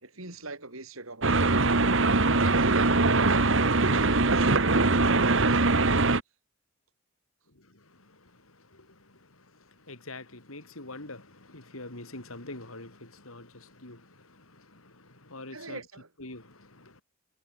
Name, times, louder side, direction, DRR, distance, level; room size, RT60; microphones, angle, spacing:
voice 1, 0.0-1.7 2.4-5.6 15.5-16.1, right 3 dB, 85° right, 5.5 m, -41 dB
sound 1, 1.2-6.2, right 3 dB, 65° right, 1.7 m, -22 dB
voice 2, 7.5-15.8 16.2-17.0, left 2 dB, 90° left, 5.6 m, -46 dB
head